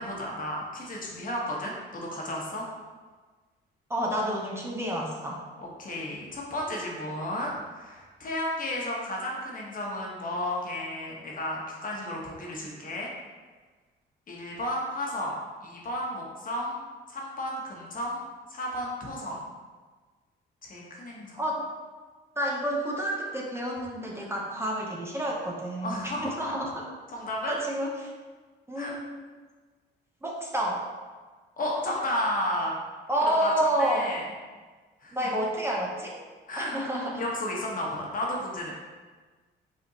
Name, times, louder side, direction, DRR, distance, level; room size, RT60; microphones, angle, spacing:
voice 1, 0.0-2.7 5.6-13.1 14.3-15.4 15.6-16.8 17.1-18.2 18.5-19.4 20.6-21.4 25.8-26.3 27.1-27.6 28.7-29.0 31.6-32.7 33.4-34.3 35.0-35.3 36.5-36.8 37.2-38.7, left 1 dB, 45° left, -2 dB, 1.1 m, -33 dB
voice 2, 3.9-5.4 21.4-21.7 22.4-26.8 27.5-28.1 28.7-29.2 30.2-30.9 33.1-34.0 35.1-36.1 36.6-37.3, right 1 dB, 10° right, -3 dB, 0.7 m, -29 dB
5.4 x 3.5 x 2.8 m, 1.4 s
cardioid pair, 90°, 20 cm